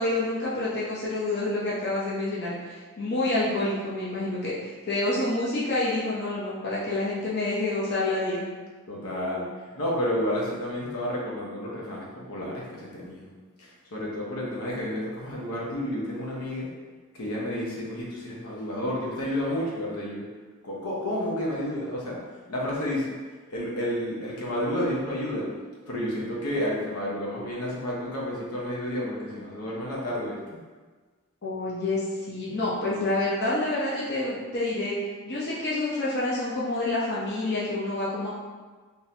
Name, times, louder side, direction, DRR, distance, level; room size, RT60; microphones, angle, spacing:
voice 1, 0.0-8.5 31.4-34.9 35.2-38.3, left 2 dB, 50° left, -7 dB, 0.7 m, -28 dB
voice 2, 8.9-9.5 9.8-13.3 13.6-16.7 17.1-20.2 20.6-22.2 22.5-23.1 23.5-25.5 25.9-30.4, left 1 dB, 85° left, -4 dB, 0.8 m, -30 dB
3.7 x 2.6 x 2.8 m, 1.4 s
head